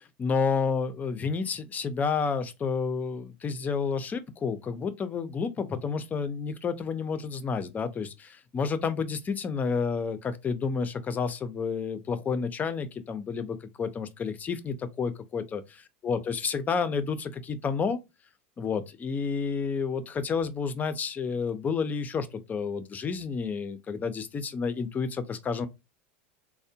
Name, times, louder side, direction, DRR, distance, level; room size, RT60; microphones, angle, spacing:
voice 1, 0.2-18.0 18.6-25.7, left 5 dB, 25° left, 0.5 m, -30 dB
3.4 x 2.1 x 2.6 m
hypercardioid pair, 95°, 6 cm